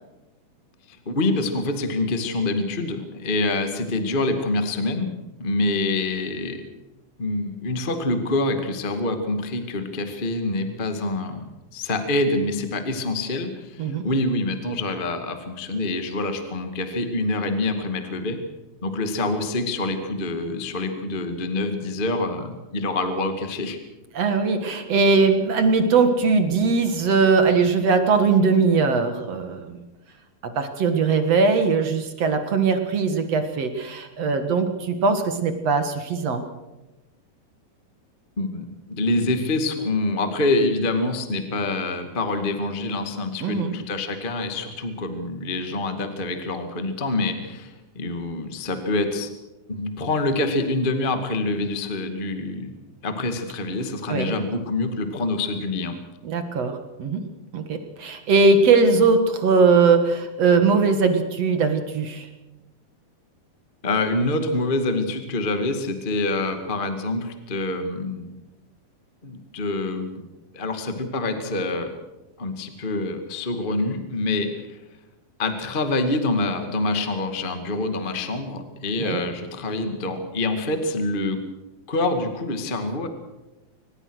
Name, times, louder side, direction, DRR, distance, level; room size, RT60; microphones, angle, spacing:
voice 1, 0.9-5.1 5.4-6.6 7.2-11.4 11.7-18.4 18.8-23.8 38.4-49.3 49.7-52.7 53.0-55.9 63.8-68.3 69.2-70.2 70.5-71.9 72.4-74.8 75.4-81.4 81.9-83.1, left 2 dB, 25° left, 7 dB, 1.3 m, -26 dB
voice 2, 24.1-29.8 30.6-36.4 43.4-43.8 54.1-54.3 56.2-57.2 57.5-62.3 79.0-79.2, right 4 dB, 50° right, 8 dB, 2.3 m, -20 dB
24.0 x 20.0 x 6.4 m, 1.0 s
omnidirectional pair, 4.4 m